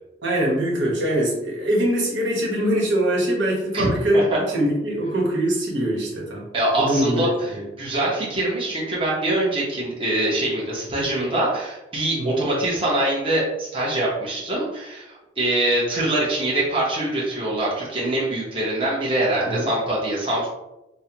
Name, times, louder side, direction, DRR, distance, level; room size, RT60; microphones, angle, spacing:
voice 1, 0.2-6.5 6.8-7.6 12.2-12.4 19.4-19.7, right 1 dB, 80° right, -3 dB, 1.1 m, -23 dB
voice 2, 3.7-4.2 6.5-7.3 7.8-20.5, right 1 dB, 30° right, -6 dB, 1.0 m, -24 dB
5.5 x 2.2 x 2.9 m, 0.95 s
head